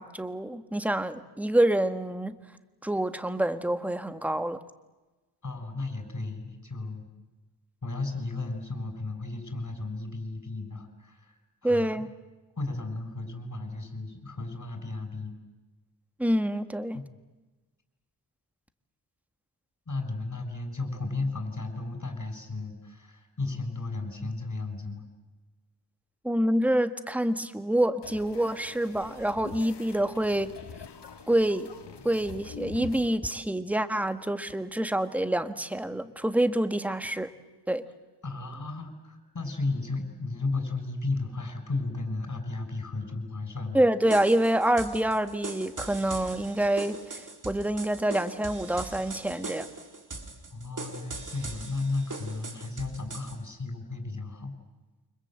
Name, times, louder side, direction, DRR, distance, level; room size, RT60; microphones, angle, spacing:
voice 1, 0.0-2.3 2.8-4.6 11.6-12.1 16.2-17.0 26.2-30.5 31.3-31.7 32.0-37.3 37.7-37.8 43.7-49.7, right 1 dB, 5° right, 10 dB, 1.5 m, -27 dB
voice 2, 5.4-7.1 7.8-12.0 12.6-15.3 16.9-17.0 19.9-25.1 38.2-43.9 50.5-54.5, left 3 dB, 45° left, 6 dB, 6.7 m, -34 dB
sound 1, 28.0-33.1, left 6 dB, 75° left, 2.1 m, -44 dB
sound 2, 44.1-53.4, right 3 dB, 45° right, 4.3 m, -40 dB
29.0 x 26.0 x 7.7 m, 1.1 s
wide cardioid pair, 85°, 41 cm